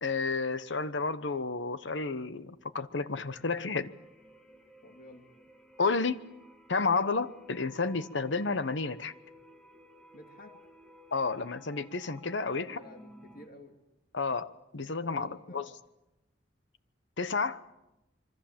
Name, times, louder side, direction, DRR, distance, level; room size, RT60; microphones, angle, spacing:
voice 1, 0.0-3.9 5.8-6.2 6.7-9.1 11.1-12.8 14.1-15.7 17.2-17.6, left 4 dB, 75° left, 14 dB, 1.1 m, -31 dB
sound 1, 3.2-13.5, equal, 5° left, 2.2 m, -56 dB
voice 2, 4.8-5.3 10.1-10.6 12.4-13.8 15.0-15.8, left 2 dB, 50° left, 5 dB, 2.4 m, -51 dB
26.5 x 23.5 x 7.4 m, 0.93 s
head